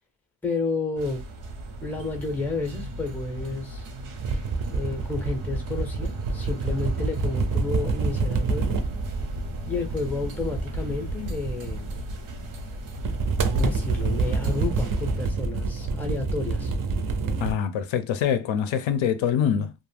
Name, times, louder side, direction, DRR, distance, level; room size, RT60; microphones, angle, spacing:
voice 1, 0.4-1.2 1.8-3.9 4.7-8.8 9.7-11.9 13.4-16.8, left 3 dB, 5° left, 0.5 m, -31 dB
sound 1, 1.0-15.3, right 1 dB, 90° right, 0.9 m, -37 dB
sound 2, 4.2-12.3 12.9-17.5, right 4 dB, 45° right, 0.5 m, -27 dB
voice 2, 17.4-19.7, left 8 dB, 75° left, 0.5 m, -24 dB
2.4 x 2.1 x 3.2 m
cardioid pair, 125°, 47 cm